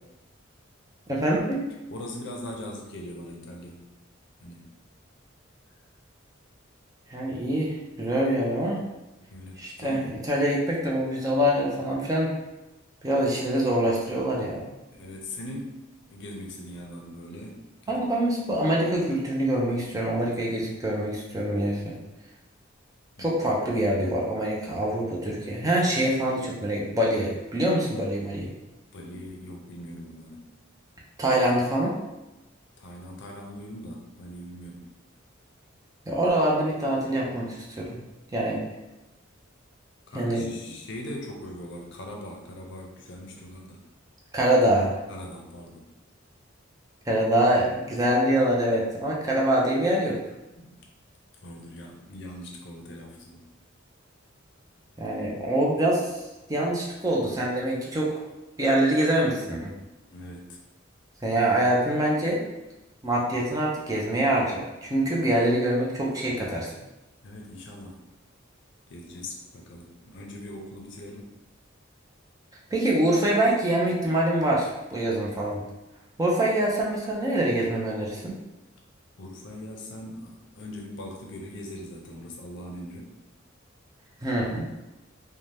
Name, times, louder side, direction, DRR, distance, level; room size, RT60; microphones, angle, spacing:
voice 1, 1.1-1.7 7.1-8.8 9.6-12.3 13.0-14.6 17.9-22.0 23.2-28.5 31.2-32.0 36.1-38.0 38.3-38.6 40.1-40.5 44.3-45.0 47.1-50.2 55.0-56.2 56.5-58.1 58.6-59.7 61.2-62.4 63.0-66.7 72.7-75.6 76.2-78.4 84.2-84.7, right 1 dB, 15° right, -3 dB, 0.5 m, -25 dB
voice 2, 1.9-3.9 4.4-4.7 9.3-10.1 14.9-15.8 16.1-18.0 23.2-23.4 28.9-30.4 32.8-34.9 40.1-43.8 45.1-45.9 50.5-50.8 51.4-53.4 60.1-60.6 67.2-68.0 68.9-71.3 79.2-83.1, left 1 dB, 60° left, 0 dB, 0.5 m, -40 dB
2.7 x 2.2 x 3.3 m, 0.99 s
head